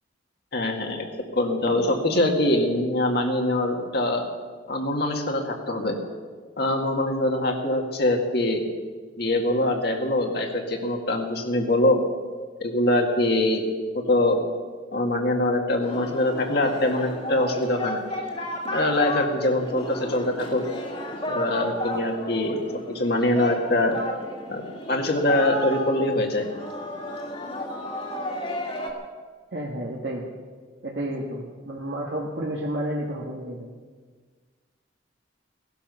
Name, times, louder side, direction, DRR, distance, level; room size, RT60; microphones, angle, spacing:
voice 1, 0.5-1.1 1.3-4.2 4.7-6.0 6.6-8.6 9.2-12.0 12.6-13.6 13.9-14.4 14.9-18.0 18.7-20.6 21.3-22.6 22.9-24.0 24.5-26.5, left 1 dB, 50° left, 2 dB, 1.9 m, -23 dB
Singing, 15.8-28.9, left 1 dB, 30° left, 2.2 m, -33 dB
voice 2, 29.5-30.2 30.8-33.7, right 1 dB, 55° right, -3 dB, 1.7 m, -31 dB
17.5 x 11.5 x 6.9 m, 1.5 s
head